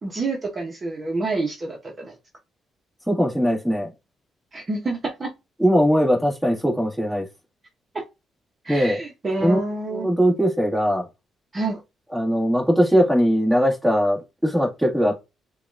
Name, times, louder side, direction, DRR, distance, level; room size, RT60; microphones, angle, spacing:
voice 1, 0.0-2.1 4.5-5.3 8.6-10.1 11.5-11.8, right 3 dB, 35° right, 0.9 m, -28 dB
voice 2, 3.1-3.9 5.6-7.3 8.7-9.0 9.4-9.6 9.9-11.0 12.1-15.2, equal, ahead, 1.6 m, -20 dB
6.7 x 2.3 x 2.5 m
cardioid pair, 90°, 0 cm